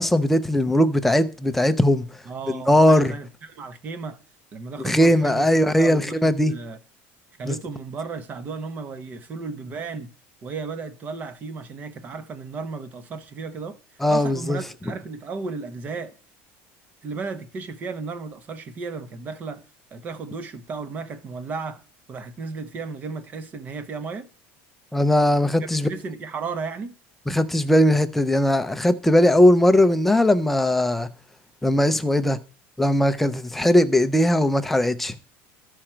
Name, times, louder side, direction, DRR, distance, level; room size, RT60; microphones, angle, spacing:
voice 1, 0.0-2.1 2.5-3.1 4.8-6.5 7.4-7.6 14.0-14.6 24.9-25.9 27.3-31.1 31.6-32.4 32.8-35.1, left 1 dB, 5° left, 0.5 m, -19 dB
voice 2, 2.3-4.2 4.5-6.8 7.4-10.1 10.4-13.8 14.1-16.1 17.0-19.6 19.9-21.8 22.1-24.3 25.6-26.9, right 4 dB, 30° right, 0.9 m, -34 dB
13.5 x 4.9 x 4.4 m
cardioid pair, 160°, 6 cm